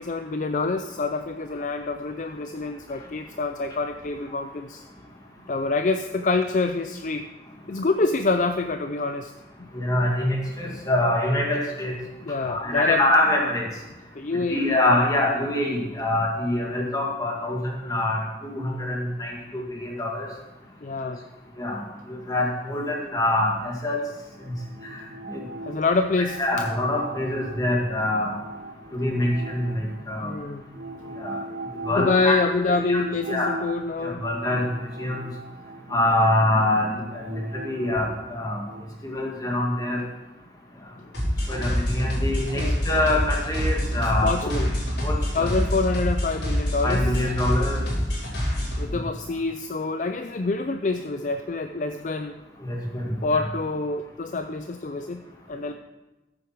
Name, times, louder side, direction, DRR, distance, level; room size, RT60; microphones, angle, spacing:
voice 1, 0.0-4.8 5.5-7.3 7.7-9.3 9.6-9.7 12.2-13.0 14.1-14.8 20.8-21.2 25.6-26.4 30.2-30.6 31.9-34.2 42.6-42.8 44.2-44.7 45.3-47.0 48.8-52.3 53.2-55.7, left 3 dB, 45° left, 7 dB, 0.5 m, -26 dB
voice 2, 9.7-11.9 12.4-13.7 14.5-20.3 21.6-21.8 22.1-24.0 25.3-25.4 26.4-28.4 28.9-30.3 31.2-31.4 31.9-32.4 32.9-33.6 34.0-34.6 35.0-35.3 35.9-38.6 39.0-40.0 41.5-44.5 45.0-45.6 46.8-47.8 52.6-53.5, left 1 dB, 20° left, -1 dB, 2.0 m, -25 dB
sound 1, 24.4-30.2 30.7-38.8, right 2 dB, 60° right, 1.1 m, -40 dB
sound 2, 41.1-48.8, equal, 85° left, 4.6 m, -26 dB
14.0 x 8.2 x 4.6 m, 1.0 s
head